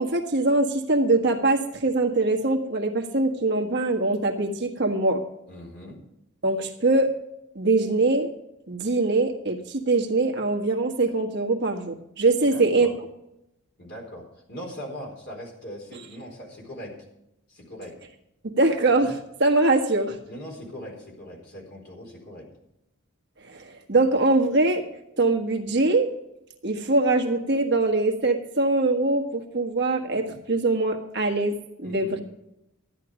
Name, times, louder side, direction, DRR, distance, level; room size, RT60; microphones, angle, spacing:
voice 1, 0.0-5.2 6.4-7.1 7.5-8.3 8.7-12.9 18.4-20.2 23.4-24.8 25.2-26.1 26.6-32.2, right 2 dB, 50° right, 4 dB, 1.5 m, -23 dB
voice 2, 5.5-6.0 12.4-13.0 13.8-17.0 17.5-18.0 20.2-22.5 31.8-32.2, equal, 50° left, 0 dB, 4.3 m, -40 dB
13.5 x 10.0 x 5.0 m, 0.83 s
head